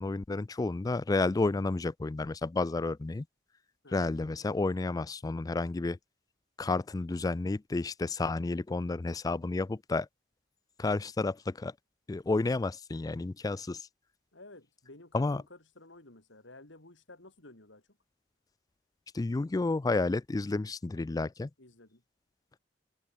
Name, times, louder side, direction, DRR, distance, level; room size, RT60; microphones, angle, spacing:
voice 1, 0.0-3.3 3.9-6.0 6.6-10.1 10.8-11.7 12.1-13.9 15.1-15.4 19.1-21.5, left 3 dB, 20° left, 0.3 m, -31 dB
voice 2, 14.3-17.8 21.6-22.0, left 2 dB, 80° left, 3.6 m, -53 dB
head